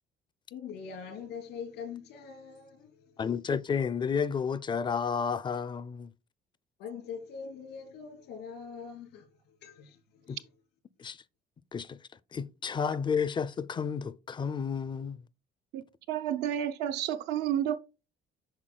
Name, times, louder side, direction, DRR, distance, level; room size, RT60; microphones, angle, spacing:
voice 1, 0.5-3.1 6.8-10.5, left 6 dB, 85° left, 2.9 m, -43 dB
voice 2, 3.2-6.1 10.3-10.4 11.0-11.2 11.7-12.0 12.3-15.2, left 6 dB, 30° left, 0.4 m, -31 dB
voice 3, 16.1-17.9, right 10 dB, 85° right, 0.7 m, -30 dB
8.7 x 6.0 x 2.2 m
cardioid pair, 110°, 17 cm